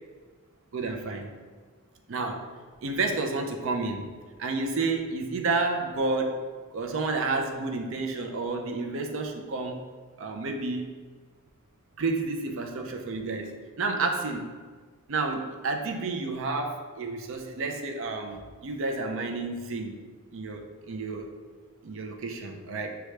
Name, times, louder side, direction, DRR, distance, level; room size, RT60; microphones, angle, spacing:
voice 1, 0.7-1.3 2.1-2.5 2.8-4.1 4.4-6.4 6.7-9.8 10.2-10.9 12.0-14.5 15.1-20.0 20.3-21.3 21.8-23.0, right 3 dB, 65° right, 3 dB, 0.5 m, -30 dB
5.9 x 2.3 x 3.2 m, 1.5 s
head